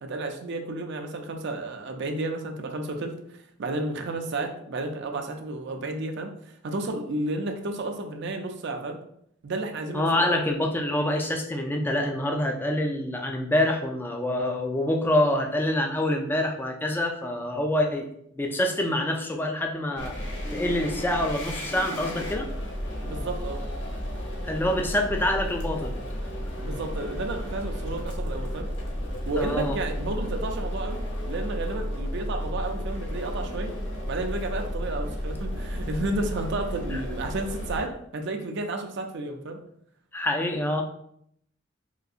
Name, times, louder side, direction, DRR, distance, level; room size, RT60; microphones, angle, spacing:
voice 1, 0.0-3.1 3.6-6.3 6.6-9.0 9.4-10.3 23.0-23.6 26.6-28.7 29.2-33.7 34.0-39.6, right 2 dB, 60° right, 4 dB, 0.4 m, -32 dB
voice 2, 9.9-18.1 18.4-20.1 20.5-22.5 24.4-25.9 29.4-29.8 36.9-37.0 40.1-40.8, left 1 dB, 10° left, 2 dB, 0.3 m, -26 dB
sound 1, 20.0-37.8, equal, 60° left, 0.9 m, -33 dB
3.8 x 2.6 x 2.4 m, 0.71 s
head